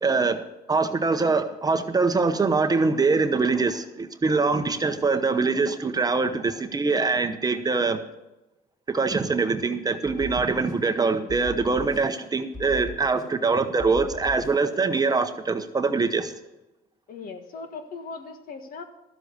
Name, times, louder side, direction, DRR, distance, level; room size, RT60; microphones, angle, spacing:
voice 1, 0.0-8.0 8.9-16.3, right 4 dB, 20° right, 8 dB, 0.9 m, -23 dB
sound 1, 10.0-11.0 11.3-12.3 12.5-13.5 13.8-14.8, left 4 dB, 20° left, 2.2 m, -39 dB
voice 2, 17.1-18.8, left 4 dB, 60° left, 7 dB, 1.6 m, -38 dB
12.5 x 7.7 x 6.8 m, 0.98 s
cardioid pair, 110°, 17 cm